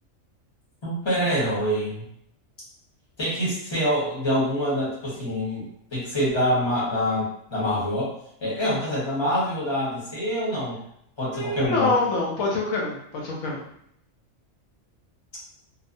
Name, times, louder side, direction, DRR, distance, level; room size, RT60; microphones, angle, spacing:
voice 1, 0.8-2.1 3.2-8.1 8.4-10.8 11.2-11.9, equal, 25° left, -8 dB, 1.0 m, -25 dB
voice 2, 11.3-13.6, left 2 dB, 75° left, -3 dB, 0.9 m, -25 dB
2.7 x 2.1 x 2.5 m, 0.71 s
omnidirectional pair, 1.4 m